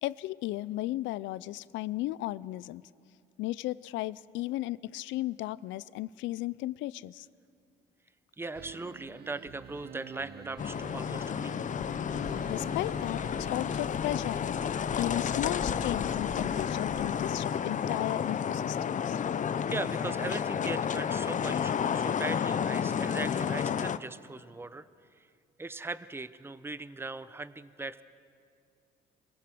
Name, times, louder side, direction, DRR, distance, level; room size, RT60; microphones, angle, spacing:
voice 1, 0.0-2.8 3.4-7.3 12.5-13.2 13.5-14.5 15.0-19.2, left 16 dB, 85° left, 19 dB, 0.5 m, -35 dB
voice 2, 8.4-11.7 19.3-24.9 25.2-25.3 25.6-28.0, right 3 dB, 10° right, 14 dB, 0.7 m, -39 dB
sound 1, 8.5-13.9, right 7 dB, 55° right, 1.0 m, -48 dB
sound 2, 10.6-24.0, left 8 dB, 40° left, 0.6 m, -31 dB
Rain, 11.8-17.1, left 6 dB, 60° left, 1.2 m, -44 dB
27.0 x 16.5 x 6.1 m, 2.3 s
cardioid pair, 80°, 19 cm